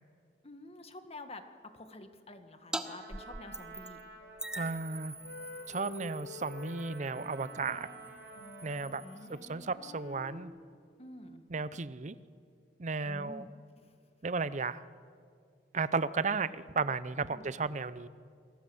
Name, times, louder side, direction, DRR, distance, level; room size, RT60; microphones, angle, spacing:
voice 1, 0.4-4.0 9.0-9.6 11.0-11.5 13.0-13.5 13.8-14.0 17.3-17.7, left 1 dB, 35° left, 7 dB, 1.7 m, -49 dB
sound 1, 2.7-2.8 3.1-4.0 4.4-9.5, right 1 dB, 5° right, 1.1 m, -44 dB
Trumpet, 2.8-9.1, right 4 dB, 80° right, 4.3 m, -52 dB
sound 2, 4.2-4.6 5.1-10.4, left 3 dB, 90° left, 4.8 m, -49 dB
voice 2, 4.6-5.1 5.7-7.9 8.6-9.0 9.3-10.5 11.5-12.1 12.8-13.4 14.2-14.8 15.7-18.1, right 4 dB, 45° right, 15 dB, 0.7 m, -34 dB
27.5 x 19.0 x 7.9 m, 2.2 s
head